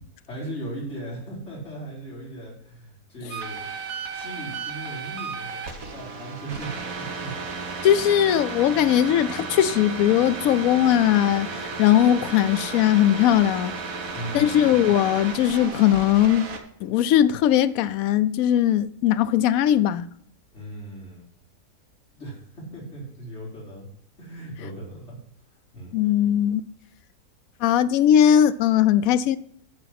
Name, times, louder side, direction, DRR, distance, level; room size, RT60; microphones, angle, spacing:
voice 1, 0.3-7.3 14.1-14.6 20.5-21.2 22.1-23.9 24.2-25.2 25.7-25.9, right 1 dB, 45° left, 4.6 m, -38 dB
sound 1, 3.3-16.6, right 4 dB, 65° right, 1.6 m, -34 dB
voice 2, 7.8-11.5 11.8-13.7 14.3-16.5 16.8-20.1 25.9-26.6 27.6-29.4, left 11 dB, 70° left, 1.0 m, -19 dB
14.0 x 4.8 x 5.9 m
omnidirectional pair, 1.6 m